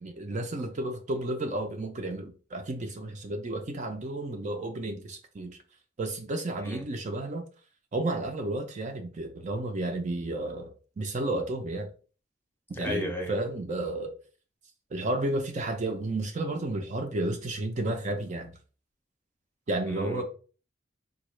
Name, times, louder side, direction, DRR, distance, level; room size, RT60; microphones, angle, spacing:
voice 1, 0.0-5.6 6.0-7.4 7.9-10.7 11.0-11.9 12.8-14.1 14.9-18.5 19.7-20.2, right 2 dB, 40° right, 0.4 m, -32 dB
voice 2, 12.7-13.3 19.9-20.2, left 1 dB, 10° left, 0.6 m, -34 dB
3.7 x 2.3 x 3.1 m
head